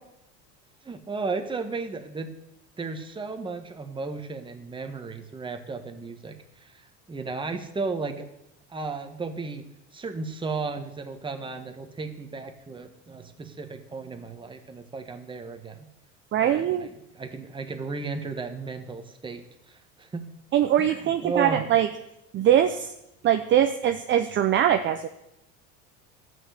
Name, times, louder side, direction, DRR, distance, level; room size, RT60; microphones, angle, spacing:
voice 1, 0.8-2.3 2.8-6.7 7.1-8.2 8.7-9.6 9.9-15.9 16.4-20.2 20.8-21.6, right 4 dB, 15° right, 5 dB, 1.4 m, -34 dB
voice 2, 16.3-16.9 20.5-21.9 22.3-22.9 23.2-25.1, right 10 dB, 35° right, 7 dB, 0.7 m, -22 dB
12.0 x 6.3 x 8.1 m, 0.85 s
supercardioid pair, 120°, 32 cm